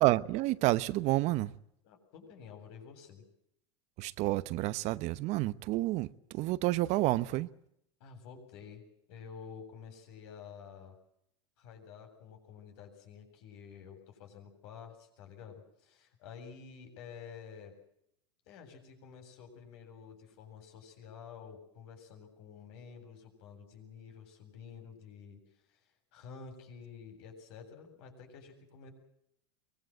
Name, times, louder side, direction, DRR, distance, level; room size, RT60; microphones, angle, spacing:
voice 1, 0.0-1.5 4.0-7.5, right 18 dB, 50° right, 1.0 m, -29 dB
voice 2, 1.8-3.2 8.0-8.8 9.1-11.0 11.6-17.7 18.5-25.4 25.7-25.8 26.1-28.9, left 6 dB, 65° left, 7.9 m, -50 dB
23.5 x 22.0 x 7.9 m
hypercardioid pair, 100°, 15 cm